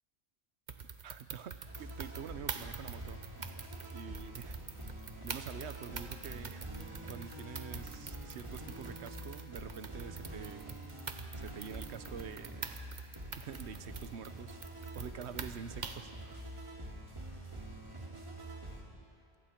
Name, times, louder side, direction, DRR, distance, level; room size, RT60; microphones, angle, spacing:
sound 1, 0.7-16.2, right 5 dB, 45° right, 1.0 m, -46 dB
voice 1, 1.0-3.2 3.9-4.6 5.2-11.0 11.4-12.9 13.4-14.6 14.9-16.4, right 8 dB, 90° right, 13 dB, 1.0 m, -47 dB
sound 2, 1.7-18.8, right 1 dB, 25° right, 2.9 m, -46 dB
27.5 x 24.0 x 4.4 m, 2.5 s
omnidirectional pair, 1.1 m